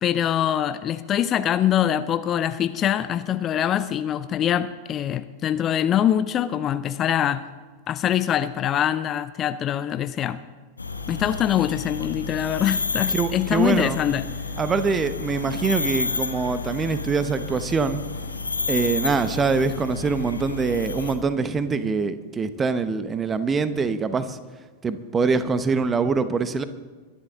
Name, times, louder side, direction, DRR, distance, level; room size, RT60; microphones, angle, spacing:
voice 1, 0.0-7.4 7.9-10.4 11.1-14.3, left 10 dB, 30° left, 13 dB, 0.5 m, -24 dB
sound 1, 10.8-21.2, left 4 dB, 80° left, 1.3 m, -30 dB
voice 2, 13.1-14.0 14.6-18.0 18.7-24.4 24.8-26.6, right 4 dB, 20° right, 12 dB, 0.9 m, -24 dB
22.5 x 11.0 x 3.8 m, 1.4 s
figure-of-eight pair, 90°, 0 cm